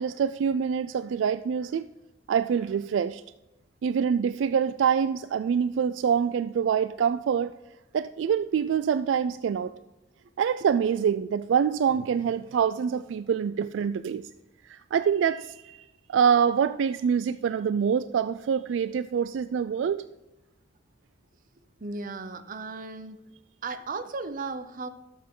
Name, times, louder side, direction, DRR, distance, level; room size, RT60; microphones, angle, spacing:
voice 1, 0.0-1.8 2.3-3.2 3.8-7.5 7.9-9.7 10.4-14.2 14.6-15.8 16.1-20.0, right 7 dB, 70° right, 13 dB, 0.3 m, -25 dB
voice 2, 21.8-23.2 23.6-24.9, right 3 dB, 45° right, 11 dB, 0.7 m, -35 dB
12.5 x 7.3 x 3.7 m, 0.98 s
head